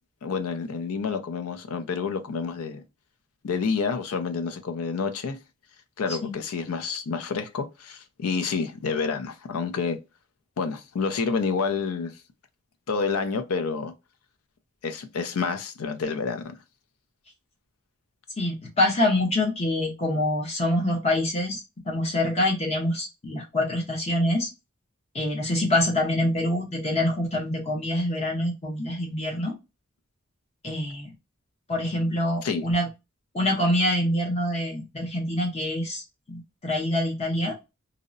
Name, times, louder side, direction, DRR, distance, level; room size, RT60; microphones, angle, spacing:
voice 1, 0.2-2.8 3.4-5.4 6.0-10.0 10.6-12.1 12.9-13.9 14.8-16.6 32.4-32.6, left 5 dB, 85° left, 0.4 m, -28 dB
voice 2, 18.4-24.5 25.1-29.5 30.6-31.1 31.7-32.9 33.3-36.0 36.3-37.5, left 1 dB, 30° left, 0.7 m, -25 dB
2.7 x 2.0 x 2.5 m
head